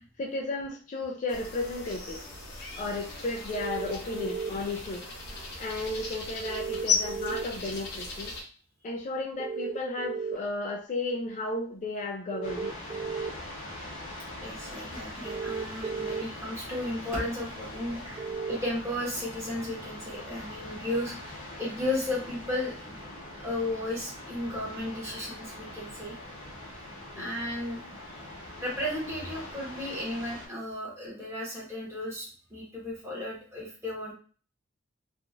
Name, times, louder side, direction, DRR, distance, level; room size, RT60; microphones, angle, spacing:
voice 1, 0.2-2.2 2.8-5.0 5.6-8.3 8.8-12.7 27.2-27.3, left 2 dB, 40° left, 1 dB, 0.3 m, -34 dB
sound 1, 1.3-8.4, left 4 dB, 60° left, 0.9 m, -36 dB
sound 2, 3.5-4.5 6.5-7.4 9.4-10.4 12.3-13.3 15.2-16.2 18.2-18.6, right 6 dB, 40° right, 1.2 m, -34 dB
sound 3, 12.4-30.5, left 1 dB, 85° left, 1.0 m, -42 dB
voice 2, 14.4-22.9 23.4-26.2 27.2-27.8 28.6-34.1, left 1 dB, 15° right, -5 dB, 1.1 m, -34 dB
3.0 x 2.4 x 2.4 m, 0.40 s
head